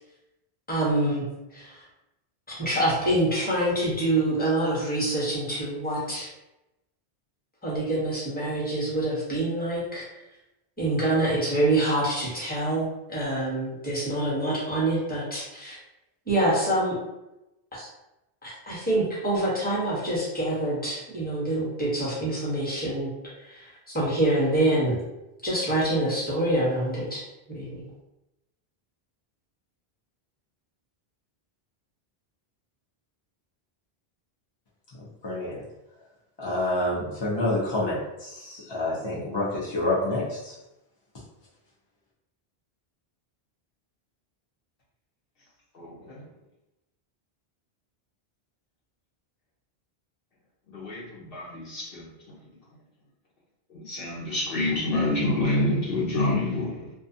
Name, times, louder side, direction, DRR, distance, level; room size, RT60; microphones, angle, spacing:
voice 1, 0.7-1.3 1.5-1.8 2.6-6.3 7.6-10.1 10.8-15.8 16.3-17.0 17.7-17.9 18.4-23.1 23.4-25.0 25.4-27.2 27.5-27.8, right 1 dB, 10° left, -7 dB, 0.9 m, -26 dB
voice 2, 35.2-35.6 36.4-40.5, left 1 dB, 35° left, -7 dB, 0.5 m, -28 dB
voice 3, 45.7-46.2 50.7-52.1 53.7-56.9, left 2 dB, 65° left, -5 dB, 0.9 m, -27 dB
2.4 x 2.4 x 2.6 m, 0.93 s
omnidirectional pair, 1.1 m